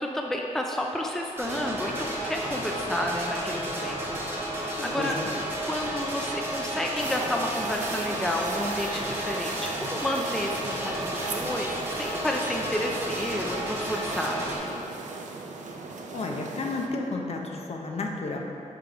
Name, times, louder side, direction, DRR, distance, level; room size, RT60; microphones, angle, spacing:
voice 1, 0.0-5.2 5.6-14.7, left 1 dB, 5° left, 1 dB, 0.4 m, -31 dB
sound 1, 1.4-14.6, right 1 dB, 15° right, 1.1 m, -32 dB
voice 2, 5.0-5.3 16.1-18.4, left 3 dB, 55° left, 1 dB, 0.7 m, -32 dB
sound 2, 7.0-16.9, right 4 dB, 75° right, 0.6 m, -38 dB
5.9 x 5.0 x 4.5 m, 2.8 s
wide cardioid pair, 165°, 13 cm